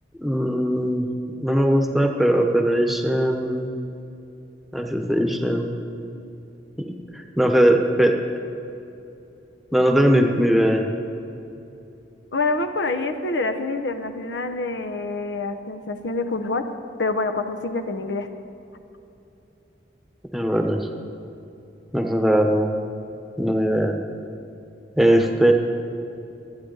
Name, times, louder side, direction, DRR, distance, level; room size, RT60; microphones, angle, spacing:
voice 1, 0.1-1.1 1.4-3.7 4.7-5.7 6.8-8.2 9.7-10.9 20.3-20.9 21.9-22.7 23.4-24.0 25.0-25.5, right 1 dB, ahead, 3 dB, 1.0 m, -20 dB
voice 2, 12.3-16.6 17.0-18.4, left 3 dB, 85° left, 7 dB, 0.9 m, -26 dB
23.5 x 9.7 x 4.0 m, 2.8 s
head